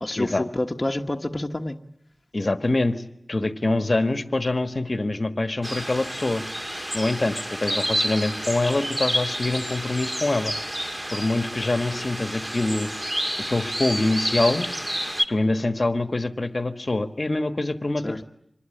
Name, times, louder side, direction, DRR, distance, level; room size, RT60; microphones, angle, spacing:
voice 1, 0.0-1.8 18.0-18.2, left 1 dB, 35° left, 3 dB, 1.3 m, -28 dB
voice 2, 2.3-6.4 6.9-10.5 11.1-12.9 13.5-14.7 15.3-18.2, left 2 dB, 55° left, 9 dB, 1.4 m, -25 dB
sound 1, 5.6-15.3, equal, 20° right, 2.0 m, -29 dB
26.0 x 21.0 x 9.0 m, 0.77 s
wide cardioid pair, 65°, 0 cm